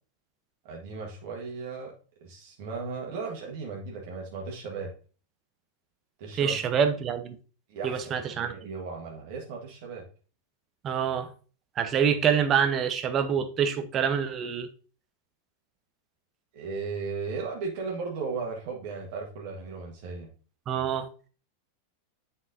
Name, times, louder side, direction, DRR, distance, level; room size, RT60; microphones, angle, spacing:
voice 1, 0.7-1.9 2.2-4.9 6.2-6.6 7.7-10.0 16.5-20.3, right 4 dB, 50° right, 1.6 m, -36 dB
voice 2, 6.4-7.4 7.8-8.5 10.8-11.3 11.8-14.7 20.7-21.1, right 7 dB, 30° right, 0.9 m, -26 dB
9.7 x 5.5 x 2.7 m
figure-of-eight pair, 90°, 0 cm